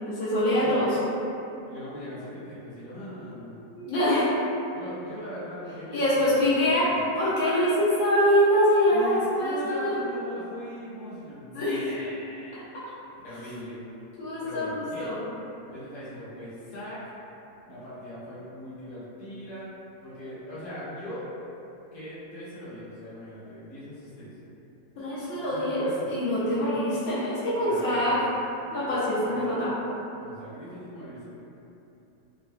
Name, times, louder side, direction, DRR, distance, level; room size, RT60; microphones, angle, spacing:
voice 1, 0.1-1.0 3.8-4.3 5.9-6.9 7.1-10.0 11.5-11.9 12.5-12.6 14.2-15.2 25.0-28.2 28.7-29.7, equal, 70° left, -10 dB, 1.0 m, -24 dB
voice 2, 1.7-3.6 4.7-6.4 6.8-7.0 8.9-12.6 13.2-13.8 14.4-15.1 15.7-17.0 17.7-19.7 20.0-21.2 21.9-24.3 25.3-26.1 26.4-26.7 27.7-28.7 29.1-29.4 30.2-31.3, equal, 25° left, -12 dB, 0.8 m, -40 dB
3.5 x 2.0 x 2.4 m, 2.9 s
omnidirectional pair, 1.7 m